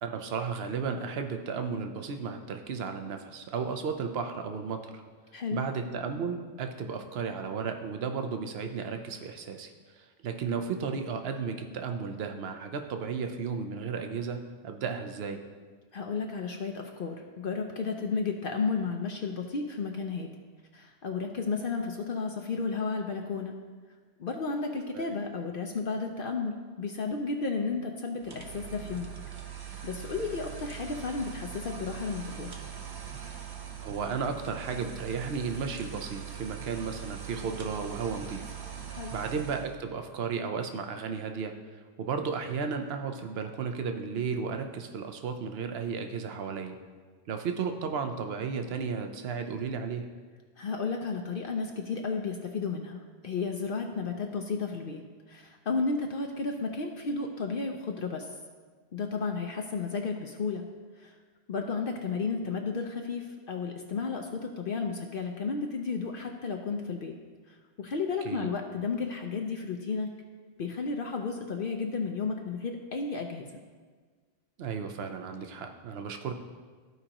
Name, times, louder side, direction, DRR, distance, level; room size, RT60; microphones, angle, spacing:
voice 1, 0.0-5.0 5.5-15.4 24.9-25.2 33.8-38.4 39.1-46.8 47.3-50.1 68.2-68.5 74.6-76.3, right 5 dB, 60° right, 6 dB, 0.9 m, -34 dB
voice 2, 5.3-5.7 15.9-20.3 20.7-23.6 24.2-29.1 29.8-32.5 38.9-39.2 50.6-55.0 55.3-58.3 58.9-60.6 61.0-61.2 61.5-67.2 67.5-70.1 70.6-73.5, left 4 dB, 55° left, 3 dB, 0.7 m, -33 dB
sound 1, 28.2-39.8, right 8 dB, 35° right, 0.3 m, -41 dB
14.0 x 4.9 x 2.9 m, 1.5 s
omnidirectional pair, 1.2 m